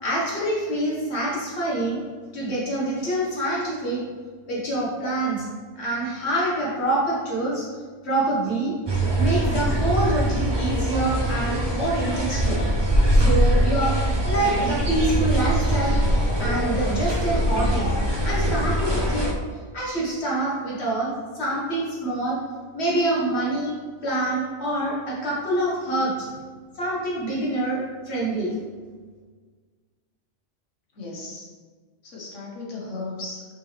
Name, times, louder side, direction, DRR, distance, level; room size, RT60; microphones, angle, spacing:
voice 1, 0.0-2.0 2.3-4.0 4.5-5.5 5.8-7.7 8.0-8.7 9.2-12.6 13.1-13.9 14.3-16.0 16.4-17.9 18.2-19.4 19.7-22.4 22.7-23.8 24.0-26.3 26.8-28.6, right 1 dB, 60° left, -5 dB, 1.8 m, -26 dB
sound 1, 8.9-19.3, right 1 dB, 25° right, 0.6 m, -22 dB
voice 2, 25.7-26.4 30.9-31.5 32.0-33.5, left 2 dB, 90° left, -2 dB, 1.5 m, -37 dB
5.4 x 5.4 x 3.3 m, 1.5 s
omnidirectional pair, 1.2 m